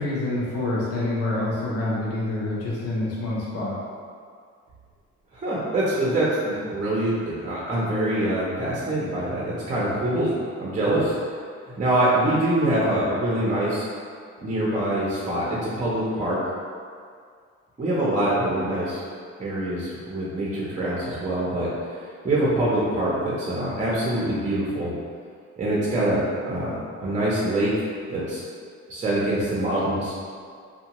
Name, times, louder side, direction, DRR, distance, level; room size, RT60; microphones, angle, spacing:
voice 1, 0.0-3.7, left 2 dB, 55° left, -6 dB, 0.7 m, -27 dB
voice 2, 5.3-10.3 10.6-11.1 11.8-13.8 14.4-16.4 17.8-19.0 19.4-21.7 22.2-24.9 25.6-27.8 28.1-28.4 28.9-30.2, right 1 dB, 25° right, -7 dB, 0.6 m, -24 dB
2.7 x 2.2 x 2.9 m, 2.1 s
cardioid pair, 90°, 30 cm